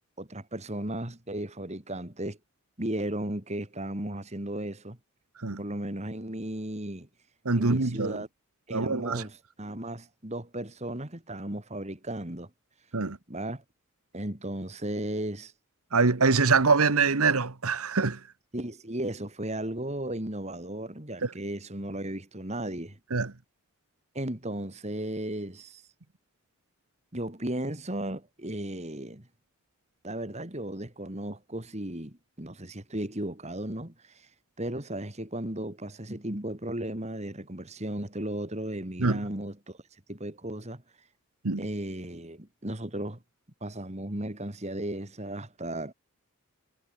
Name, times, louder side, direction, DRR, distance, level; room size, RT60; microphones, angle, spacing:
voice 1, 0.2-2.4 2.8-5.0 5.6-7.1 7.5-8.3 8.7-12.5 13.3-13.6 14.1-15.5 18.5-23.0 24.1-25.8 27.1-29.3 30.0-34.3 34.6-39.8 40.1-40.8 41.6-43.2 43.6-45.9, right 1 dB, 30° right, 2.8 m, -35 dB
voice 2, 7.4-8.2 8.7-9.2 12.9-13.2 15.9-18.2 21.2-21.3 23.1-23.3 39.0-39.2 41.4-41.6, right 4 dB, 75° right, 1.3 m, -24 dB
head